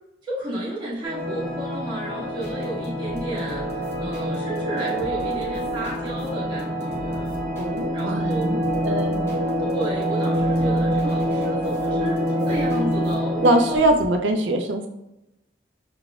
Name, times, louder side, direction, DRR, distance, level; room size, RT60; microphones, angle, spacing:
voice 1, 0.3-7.4 7.9-8.5 9.6-13.8, right 1 dB, 25° right, -8 dB, 1.6 m, -32 dB
sound 1, 1.0-13.8, equal, 50° right, 1.5 m, -26 dB
sound 2, 2.4-14.1, equal, 15° left, 0.9 m, -43 dB
voice 2, 7.6-8.6 8.8-9.2 13.4-14.9, right 1 dB, 90° right, 4 dB, 0.4 m, -22 dB
5.6 x 3.9 x 2.3 m, 0.93 s
head